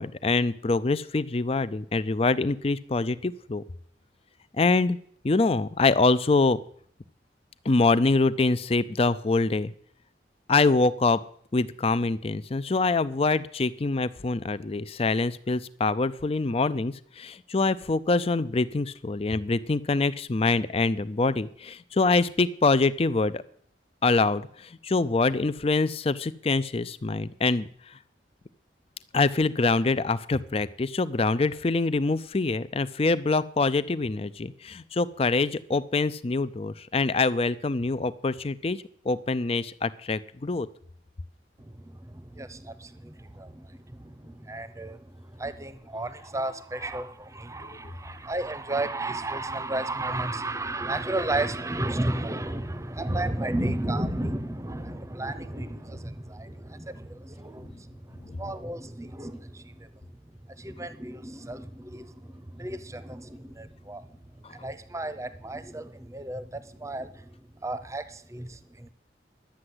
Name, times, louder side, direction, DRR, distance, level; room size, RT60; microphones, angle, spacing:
voice 1, 0.0-3.6 4.6-5.0 5.2-6.6 7.7-9.7 10.5-11.2 11.5-23.4 24.0-27.7 29.1-40.7 58.3-58.4, left 3 dB, 35° left, 15 dB, 0.5 m, -25 dB
voice 2, 42.1-45.0 45.4-57.8 58.3-59.9 60.6-64.1 64.5-67.2 67.6-68.9, right 2 dB, 15° right, 13 dB, 0.8 m, -33 dB
11.5 x 8.7 x 7.9 m, 0.62 s
head